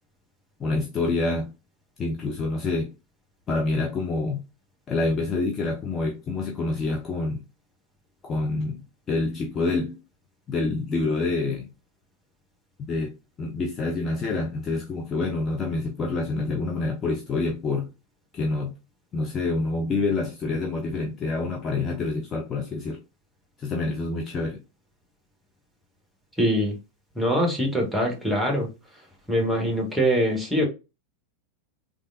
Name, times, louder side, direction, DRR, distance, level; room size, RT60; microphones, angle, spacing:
voice 1, 0.6-1.5 2.0-2.9 3.5-4.4 4.9-7.4 8.2-10.0 10.5-11.7 12.9-17.9 18.3-18.7 19.1-23.0 23.6-24.6, left 3 dB, 25° left, 0.4 m, -27 dB
voice 2, 26.4-26.8 27.2-28.7 29.3-30.7, equal, ahead, 1.1 m, -23 dB
3.3 x 2.3 x 2.5 m
figure-of-eight pair, 90°, 0 cm